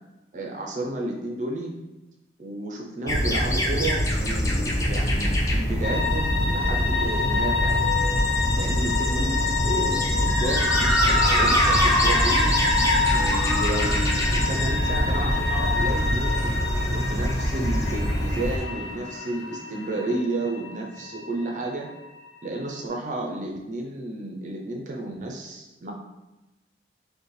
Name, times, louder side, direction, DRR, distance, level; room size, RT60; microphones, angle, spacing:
voice 1, 0.3-1.7 2.4-7.8 8.5-12.5 13.1-21.9 22.4-25.9, right 2 dB, 40° right, 0 dB, 0.4 m, -32 dB
sound 1, 3.1-18.6, equal, 15° left, 0.4 m, -24 dB
sound 2, 5.8-22.8, left 5 dB, 85° left, 0.9 m, -29 dB
Motor vehicle (road) / Siren, 10.3-18.9, equal, ahead, 1.0 m, -28 dB
5.2 x 2.1 x 3.1 m, 1.0 s
head